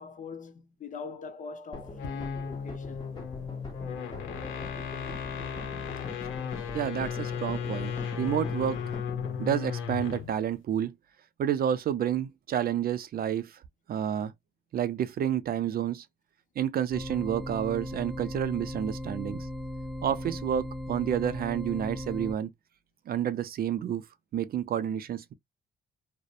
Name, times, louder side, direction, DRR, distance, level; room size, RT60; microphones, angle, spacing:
voice 1, 0.0-3.1, left 5 dB, 40° left, 0.6 m, -42 dB
sound 1, 1.7-9.4, left 1 dB, 20° left, 1.2 m, -44 dB
sound 2, 1.9-10.4, left 7 dB, 85° left, 0.7 m, -35 dB
voice 2, 6.7-8.9 9.4-10.9 11.4-13.6 13.9-14.3 14.7-16.1 16.6-19.5 20.0-22.5 23.1-24.1 24.3-25.3, right 9 dB, 50° right, 0.4 m, -30 dB
sound 3, 16.9-22.3, left 1 dB, ahead, 0.6 m, -37 dB
2.6 x 2.1 x 2.3 m
cardioid pair, 90°, 20 cm